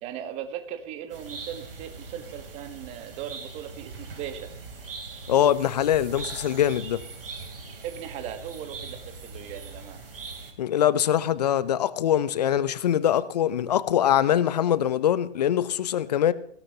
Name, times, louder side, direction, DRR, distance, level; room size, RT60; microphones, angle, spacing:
voice 1, 0.0-4.5 7.8-10.0, right 10 dB, 20° right, 1.3 m, -38 dB
sound 1, 1.1-10.5, right 4 dB, 55° right, 3.6 m, -41 dB
voice 2, 5.3-7.0 10.6-16.3, left 10 dB, 40° left, 0.9 m, -23 dB
20.5 x 16.5 x 2.9 m
figure-of-eight pair, 125°, 33 cm